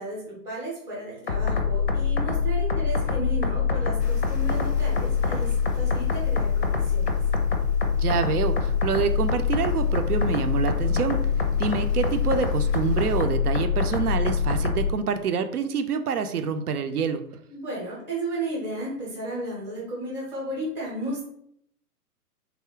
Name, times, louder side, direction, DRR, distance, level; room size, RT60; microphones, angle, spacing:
voice 1, 0.0-7.2 17.5-21.2, right 1 dB, 5° right, -6 dB, 0.6 m, -34 dB
sound 1, 1.3-14.9, left 5 dB, 40° left, 0.5 m, -24 dB
sound 2, 4.0-13.2, left 4 dB, 90° left, 0.6 m, -46 dB
voice 2, 8.0-11.2 11.6-17.2, right 6 dB, 70° right, 8 dB, 0.5 m, -26 dB
3.3 x 2.1 x 3.6 m, 0.69 s
figure-of-eight pair, 120°, 47 cm